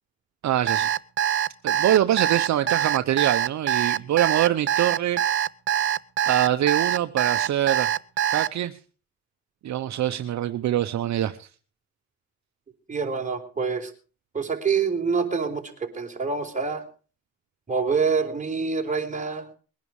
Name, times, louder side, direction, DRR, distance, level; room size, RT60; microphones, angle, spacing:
voice 1, 0.4-0.9 1.6-5.2 6.3-7.9 8.3-8.7 9.6-11.5, right 12 dB, 65° right, 9 dB, 1.0 m, -24 dB
Alarm, 0.7-8.5, right 10 dB, 40° right, 0.7 m, -23 dB
voice 2, 12.9-13.9 14.3-16.8 17.7-19.5, right 5 dB, 25° right, 2 dB, 4.3 m, -26 dB
21.5 x 10.5 x 4.9 m, 0.39 s
cardioid pair, 90°, 30 cm